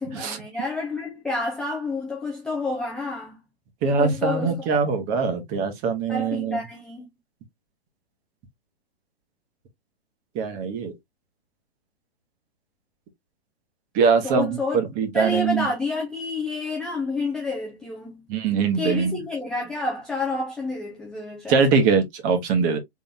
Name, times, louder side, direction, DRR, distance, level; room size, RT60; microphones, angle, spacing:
voice 1, 0.0-3.4 3.8-4.7 6.1-7.1 14.2-14.8 15.1-18.3 18.8-21.6, left 3 dB, ahead, 0.4 m, -29 dB
voice 2, 3.8-6.6 10.3-10.9 13.9-15.7 18.3-19.1 21.5-22.8, right 5 dB, 25° right, 1.1 m, -22 dB
3.8 x 3.4 x 2.7 m
hypercardioid pair, 145°, 32 cm